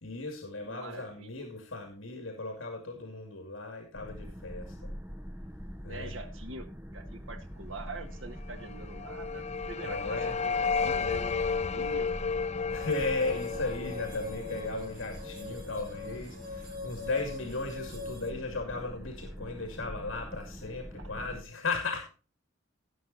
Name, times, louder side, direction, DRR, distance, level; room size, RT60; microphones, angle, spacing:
voice 1, 0.0-4.7 5.8-6.1 9.8-10.4 12.7-22.1, left 3 dB, 70° left, 4 dB, 2.4 m, -36 dB
voice 2, 0.6-1.5 5.9-6.7 6.9-12.1, right 3 dB, 75° right, 6 dB, 1.8 m, -45 dB
sound 1, 3.9-21.4, equal, 10° right, 1.0 m, -44 dB
sound 2, 8.6-15.6, left 5 dB, 35° left, 0.5 m, -33 dB
sound 3, 12.8-18.3, left 4 dB, 45° right, 2.3 m, -42 dB
17.5 x 6.3 x 4.1 m, 0.33 s
head